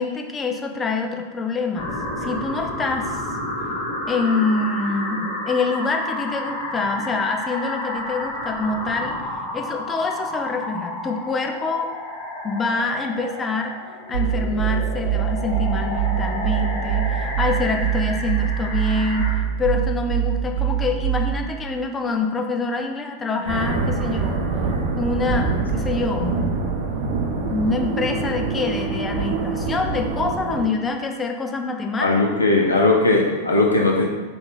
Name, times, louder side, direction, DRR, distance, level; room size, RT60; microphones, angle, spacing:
voice 1, 0.0-1.9 2.2-3.2 4.1-9.2 9.5-11.9 12.4-13.7 14.1-19.3 19.6-24.4 25.0-26.4 27.5-32.1, left 3 dB, 15° left, 3 dB, 0.4 m, -25 dB
sound 1, 1.7-19.3, left 1 dB, 50° left, 1.1 m, -31 dB
sound 2, 14.1-21.5, right 11 dB, 90° right, 0.6 m, -24 dB
sound 3, 23.5-30.6, right 4 dB, 45° right, 0.7 m, -25 dB
voice 2, 32.0-34.1, left 2 dB, 80° left, -1 dB, 0.6 m, -18 dB
3.8 x 2.5 x 3.8 m, 1.4 s
figure-of-eight pair, 90°, 0 cm